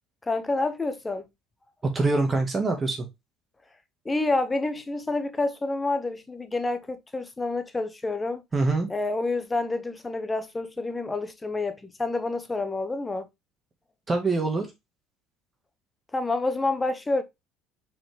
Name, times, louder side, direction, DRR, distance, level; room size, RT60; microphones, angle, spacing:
voice 1, 0.2-1.2 4.0-8.4 8.9-13.3 16.1-17.2, left 2 dB, 15° left, 0.9 m, -28 dB
voice 2, 1.8-3.1 8.5-8.9 14.1-14.7, right 3 dB, 25° right, 1.7 m, -24 dB
5.7 x 4.7 x 3.4 m
cardioid pair, 110°, 0 cm